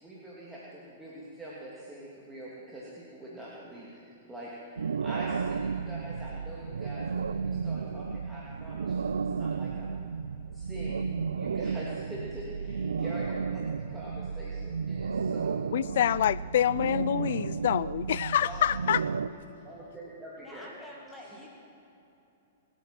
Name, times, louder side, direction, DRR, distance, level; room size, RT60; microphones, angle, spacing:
voice 1, 0.0-4.0 4.3-10.0 10.5-13.6 13.9-15.7 18.4-18.6 19.2-20.7 21.3-21.5, right 1 dB, 10° right, -7 dB, 2.8 m, -44 dB
sound 1, 4.8-19.3, right 5 dB, 90° right, 0.4 m, -33 dB
voice 2, 15.7-19.1, left 10 dB, 65° left, 20 dB, 0.4 m, -26 dB
voice 3, 20.4-21.5, left 1 dB, 10° left, -2 dB, 2.2 m, -48 dB
25.5 x 9.1 x 5.9 m, 2.8 s
hypercardioid pair, 130°, 0 cm